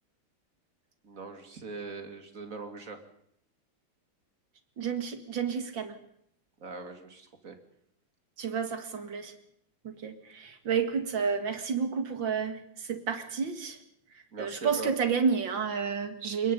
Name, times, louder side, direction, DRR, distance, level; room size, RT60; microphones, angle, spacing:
voice 1, 1.0-3.0 6.6-7.6 14.3-14.9, right 4 dB, 40° right, 6 dB, 2.7 m, -41 dB
voice 2, 4.8-6.0 8.4-9.3 9.8-13.8 14.4-16.5, right 6 dB, 70° right, 8 dB, 2.7 m, -30 dB
25.0 x 21.5 x 5.4 m, 0.72 s
omnidirectional pair, 2.1 m